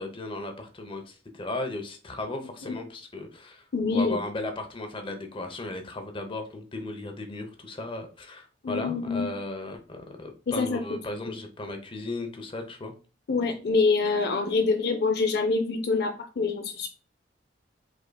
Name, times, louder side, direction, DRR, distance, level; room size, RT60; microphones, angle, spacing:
voice 1, 0.0-3.6 3.9-12.9, left 2 dB, 30° left, 5 dB, 0.8 m, -36 dB
voice 2, 3.7-4.2 8.6-9.3 10.5-10.8 11.2-11.4 13.3-16.9, left 4 dB, 60° left, 5 dB, 0.5 m, -26 dB
5.1 x 3.7 x 2.2 m, 0.37 s
head